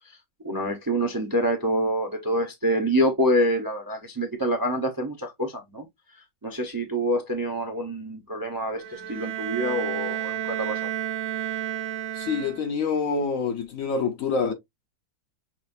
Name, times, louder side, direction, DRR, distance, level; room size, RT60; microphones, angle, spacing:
voice 1, 0.4-5.8 6.4-10.9, equal, 20° right, 0.5 m, -26 dB
Bowed string instrument, 8.8-12.9, right 11 dB, 60° right, 0.9 m, -31 dB
voice 2, 12.1-14.5, left 5 dB, 60° left, 1.0 m, -26 dB
6.3 x 2.5 x 2.5 m
omnidirectional pair, 1.9 m